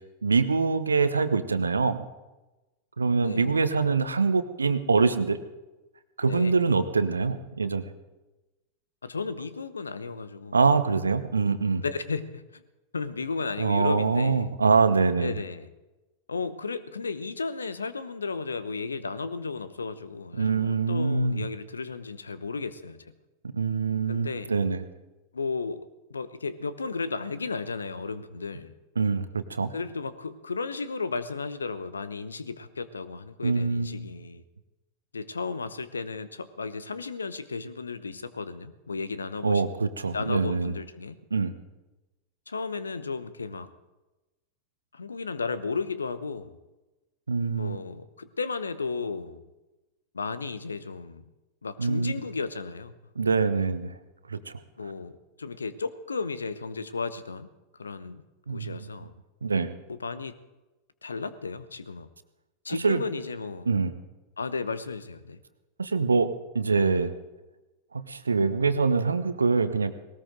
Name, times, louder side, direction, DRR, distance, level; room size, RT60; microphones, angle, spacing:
voice 1, 0.2-2.0 3.0-5.4 6.2-7.8 10.5-11.8 13.6-15.3 20.4-21.5 23.5-24.8 29.0-29.7 33.4-34.1 39.4-40.7 41.3-41.5 47.3-47.8 51.8-52.1 53.2-53.9 54.3-54.6 58.5-58.8 59.4-59.8 62.8-63.0 63.6-63.9 65.8-66.3 66.5-67.1 67.9-69.9, right 4 dB, 75° right, 12 dB, 1.0 m, -24 dB
voice 2, 3.2-3.5 6.2-6.5 9.0-10.5 11.8-12.6 12.9-14.5 15.2-15.7 16.3-23.0 24.1-24.6 25.3-28.7 29.7-34.4 35.1-39.8 40.1-41.1 42.5-43.7 44.9-46.5 47.5-49.4 50.1-51.2 51.6-52.9 54.8-57.5 57.8-58.2 58.5-59.1 59.9-60.4 61.0-62.1 62.6-63.7 64.4-65.4, left 4 dB, 75° left, 14 dB, 0.9 m, -34 dB
19.5 x 18.5 x 3.9 m, 1.1 s
figure-of-eight pair, 90°, 0 cm